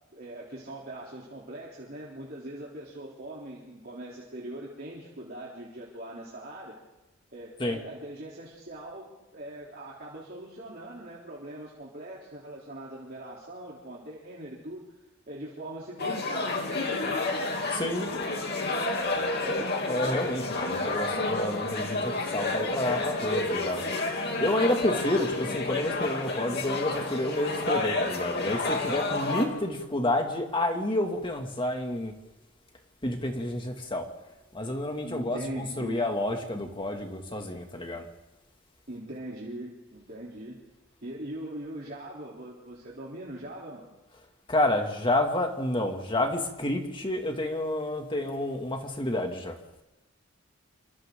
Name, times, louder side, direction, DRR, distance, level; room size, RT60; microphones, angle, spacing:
voice 1, 0.1-6.8 7.3-14.9 15.3-17.3 19.4-19.7 35.0-36.1 38.9-40.6 41.0-43.9, right 1 dB, 50° right, -5 dB, 3.5 m, -41 dB
sound 1, 16.0-29.4, left 2 dB, 55° left, 2.9 m, -30 dB
voice 2, 17.7-18.1 19.9-23.8 24.4-32.1 33.0-34.1 34.5-38.1 44.5-49.6, left 1 dB, 25° left, 3 dB, 2.5 m, -29 dB
27.5 x 25.5 x 3.9 m, 1.0 s
head